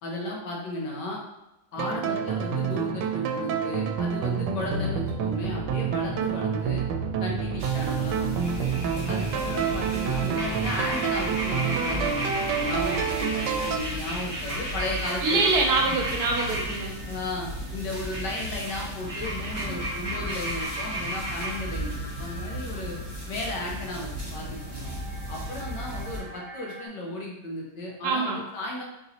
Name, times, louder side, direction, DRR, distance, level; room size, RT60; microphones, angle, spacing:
voice 1, 0.0-1.2 1.7-6.8 7.2-8.7 9.1-15.4 15.9-16.0 17.0-23.0 23.3-24.9 25.3-28.8, left 2 dB, 80° left, -1 dB, 1.6 m, -35 dB
sound 1, 1.8-13.8, right 7 dB, 85° right, 1.2 m, -28 dB
sound 2, 7.6-26.2, right 1 dB, 25° right, 0.6 m, -33 dB
sound 3, 14.4-26.9, equal, 50° left, 0.7 m, -45 dB
voice 2, 15.2-17.0 28.0-28.4, right 3 dB, 70° right, 1 dB, 1.3 m, -24 dB
4.5 x 3.9 x 2.8 m, 0.94 s
omnidirectional pair, 1.9 m